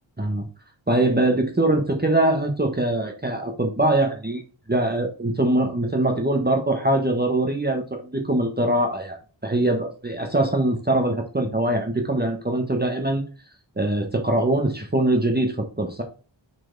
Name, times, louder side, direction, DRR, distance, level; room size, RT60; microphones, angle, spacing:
voice 1, 0.9-4.4 4.7-13.2 13.8-16.0, right 1 dB, 20° right, 2 dB, 1.3 m, -22 dB
5.9 x 4.5 x 4.6 m, 0.35 s
wide cardioid pair, 80°, 46 cm